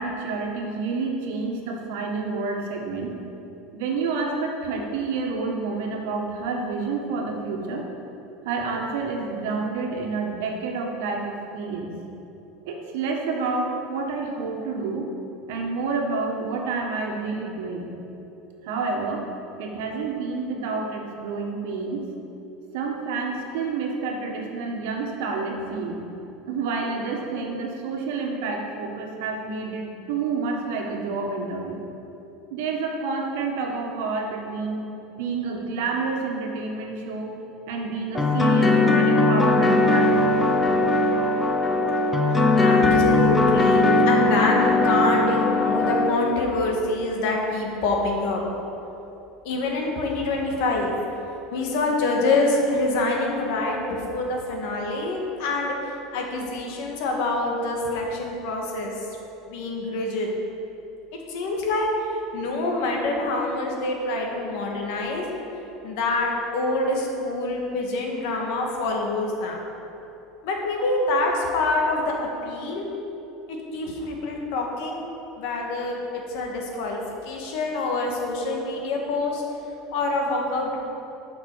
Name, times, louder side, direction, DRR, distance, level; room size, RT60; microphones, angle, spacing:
voice 1, 0.0-3.2 3.7-7.8 8.4-11.9 12.6-15.1 15.5-17.9 18.6-19.2 19.6-22.1 22.7-26.0 26.5-31.8 32.5-34.9 35.1-37.3 37.7-40.5, right 4 dB, 75° right, 1 dB, 1.5 m, -29 dB
sound 1, 38.1-46.1, left 2 dB, 10° left, 0.6 m, -19 dB
voice 2, 42.3-48.4 49.4-50.9 51.5-55.8 56.1-58.9 59.5-60.3 61.3-65.2 65.8-69.6 70.4-72.1 72.4-72.9 73.5-75.1 75.4-76.0 76.3-79.5 79.9-80.8, left 2 dB, 65° left, 0 dB, 1.7 m, -26 dB
11.5 x 5.9 x 4.8 m, 3.0 s
cardioid pair, 160°, 0 cm